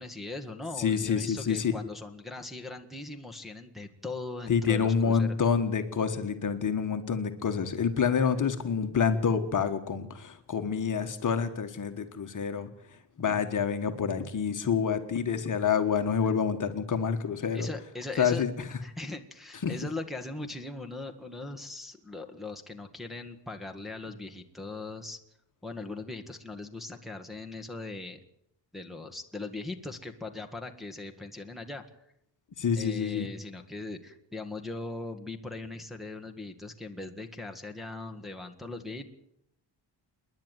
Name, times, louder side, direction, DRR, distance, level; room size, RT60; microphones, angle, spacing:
voice 1, 0.0-5.4 17.5-18.4 18.8-25.2 25.6-28.2 28.7-31.8 32.7-39.1, left 2 dB, ahead, 2 dB, 1.7 m, -40 dB
voice 2, 0.8-1.7 4.5-12.7 13.2-17.7 18.2-18.5 19.6-19.7 32.6-33.3, left 6 dB, 40° left, 7 dB, 1.6 m, -27 dB
28.5 x 11.0 x 9.3 m, 0.76 s
wide cardioid pair, 165°, 46 cm